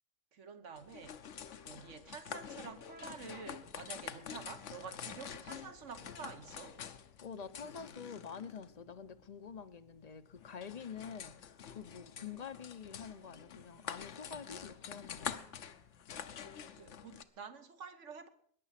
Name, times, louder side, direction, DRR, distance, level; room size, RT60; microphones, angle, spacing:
voice 1, 0.3-1.2 1.7-6.8 12.2-12.4 16.7-18.3, right 6 dB, 65° right, 1.5 m, -49 dB
sound 1, 0.8-17.2, left 8 dB, 65° left, 1.1 m, -47 dB
voice 2, 7.2-15.4, left 6 dB, 35° left, 0.8 m, -47 dB
21.0 x 10.0 x 5.8 m
omnidirectional pair, 1.4 m